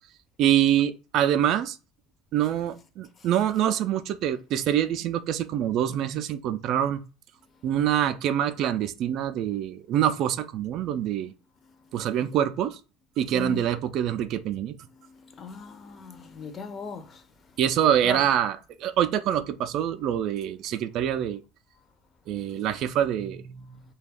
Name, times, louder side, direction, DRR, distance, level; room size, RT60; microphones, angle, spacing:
voice 1, 0.4-1.8 2.3-7.0 7.6-11.3 11.9-12.8 13.2-14.8 17.6-21.4 22.3-23.8, right 10 dB, 60° right, 0.3 m, -25 dB
voice 2, 14.9-17.2 18.0-18.2, left 5 dB, 35° left, 0.6 m, -39 dB
2.4 x 2.2 x 3.4 m
supercardioid pair, 90°, 0 cm